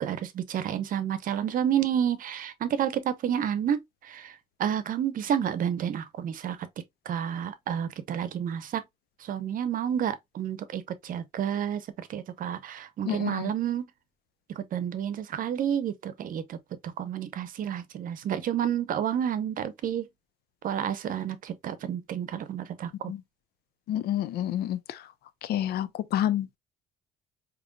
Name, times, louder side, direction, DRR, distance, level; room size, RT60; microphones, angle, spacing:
voice 1, 0.0-4.3 4.6-6.6 7.1-8.8 9.2-13.9 14.6-16.6 17.0-20.1 20.6-23.1, right 9 dB, 55° right, 0.8 m, -30 dB
voice 2, 13.1-13.4 23.1-23.2 23.9-25.0 25.5-26.6, left 11 dB, 70° left, 0.6 m, -29 dB
5.1 x 3.0 x 2.3 m
cardioid pair, 110°, 17 cm